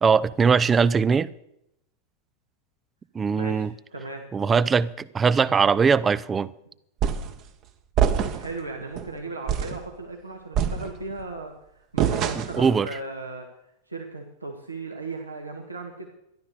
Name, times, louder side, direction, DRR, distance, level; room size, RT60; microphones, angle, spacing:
voice 1, 0.0-1.3 3.1-3.7 4.3-6.5 12.6-12.9, right 5 dB, 20° right, 0.5 m, -21 dB
voice 2, 3.3-4.3 8.2-11.5 11.9-13.5 13.9-16.1, right 3 dB, 85° right, 1.9 m, -36 dB
sound 1, 7.0-7.4 8.0-8.6 9.0-9.1 9.5-9.8 10.5-11.2 12.0-12.7, right 8 dB, 35° right, 1.2 m, -25 dB
14.0 x 12.0 x 6.7 m
figure-of-eight pair, 90°, 0 cm